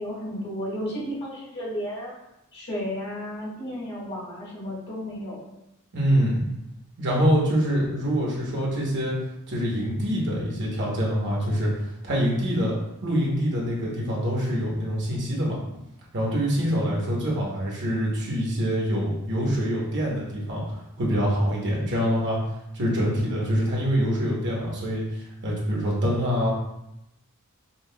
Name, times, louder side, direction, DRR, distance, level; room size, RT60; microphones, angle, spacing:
voice 1, 0.0-2.1 2.5-5.5, equal, 50° left, -6 dB, 1.4 m, -33 dB
voice 2, 5.9-6.4 7.0-9.1 9.5-11.7 12.0-12.8 13.0-15.6 16.1-20.6 21.0-22.4 22.7-26.5, equal, 55° right, -4 dB, 1.0 m, -25 dB
5.3 x 2.3 x 2.2 m, 0.86 s
head